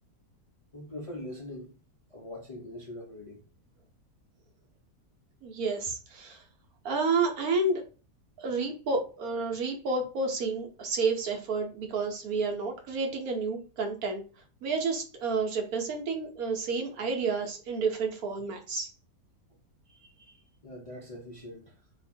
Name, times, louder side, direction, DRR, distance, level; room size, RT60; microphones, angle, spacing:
voice 1, 0.7-1.8 2.1-3.4 20.6-21.7, left 1 dB, 65° left, 0.3 m, -42 dB
voice 2, 5.4-6.4 6.8-7.8 8.4-14.2 14.6-18.9, right 4 dB, 65° right, 1.1 m, -30 dB
2.8 x 2.4 x 4.2 m
omnidirectional pair, 1.8 m